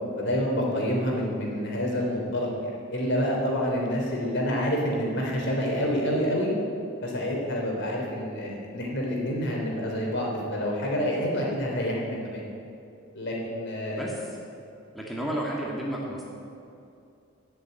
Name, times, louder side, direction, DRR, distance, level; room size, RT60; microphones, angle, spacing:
voice 1, 0.2-6.5 7.0-12.4 13.1-14.2, equal, 55° left, -2 dB, 3.6 m, -28 dB
voice 2, 13.9-14.2 14.9-16.2, right 1 dB, ahead, -4 dB, 1.8 m, -32 dB
16.0 x 7.4 x 9.4 m, 2.6 s
head